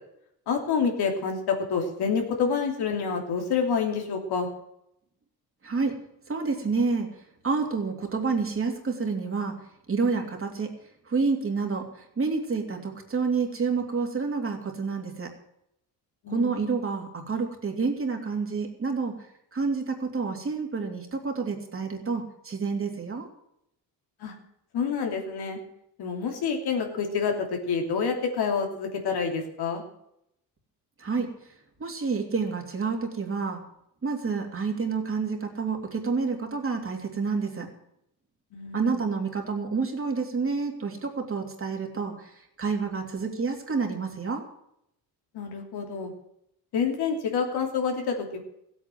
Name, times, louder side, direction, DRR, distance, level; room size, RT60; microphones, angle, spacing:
voice 1, 0.5-4.5 16.2-16.7 24.2-24.3 24.7-25.6 26.0-29.8 38.5-39.0 45.3-46.1 46.7-48.4, left 5 dB, 75° left, 3 dB, 3.0 m, -28 dB
voice 2, 5.6-6.0 6.3-7.1 7.4-9.6 9.9-10.7 11.1-15.3 16.3-19.2 19.5-23.3 31.0-31.3 31.8-33.6 34.0-37.7 38.7-42.3 42.6-44.4, right 4 dB, 35° right, 2 dB, 3.0 m, -28 dB
15.5 x 8.6 x 7.7 m, 0.76 s
cardioid pair, 95°, 39 cm